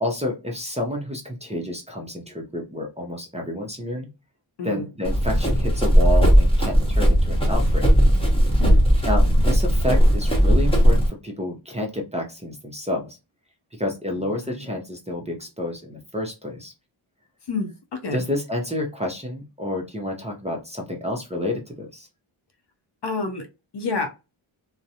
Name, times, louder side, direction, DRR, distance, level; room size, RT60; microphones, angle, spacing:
voice 1, 0.0-4.1 4.6-7.9 9.0-13.2 13.8-16.7 18.1-22.1, left 1 dB, 15° right, -1 dB, 0.5 m, -29 dB
Run, 5.0-11.1, equal, 10° left, 0.8 m, -17 dB
voice 2, 14.1-14.7 17.5-18.2 23.0-23.5 23.7-24.1, left 3 dB, 55° left, 6 dB, 0.6 m, -29 dB
2.4 x 2.0 x 2.7 m, 0.27 s
wide cardioid pair, 125°, 49 cm